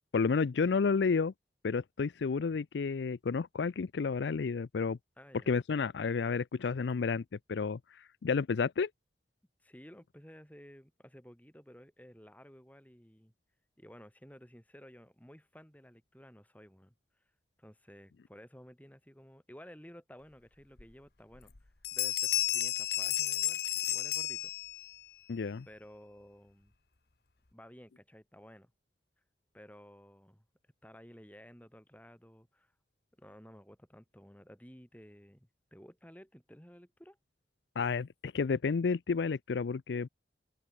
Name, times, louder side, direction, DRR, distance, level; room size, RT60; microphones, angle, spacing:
voice 1, 0.1-1.3 1.6-5.0 5.5-7.2 7.5-7.8 8.2-8.9 25.3-25.6 37.8-40.1, left 5 dB, 80° left, 0.5 m, -31 dB
voice 2, 5.2-5.5 9.6-13.3 13.8-16.9 17.6-24.5 25.7-26.7 27.5-28.7 29.5-30.4 30.8-32.7 33.2-37.2, equal, 10° left, 5.4 m, -54 dB
Bell, 20.8-20.9 21.3-21.6 21.8-25.0, left 13 dB, 60° left, 1.3 m, -32 dB
open air
head